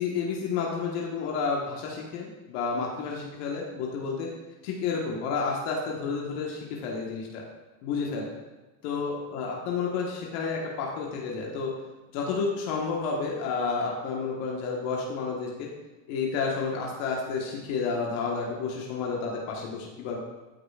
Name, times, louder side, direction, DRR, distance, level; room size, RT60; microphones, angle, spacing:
voice 1, 0.0-4.3 4.6-7.4 7.8-8.3 8.8-11.7 12.1-15.7 16.1-20.2, left 5 dB, 80° left, -2 dB, 1.5 m, -30 dB
13.5 x 5.0 x 2.4 m, 1.2 s
supercardioid pair, 95°, 43 cm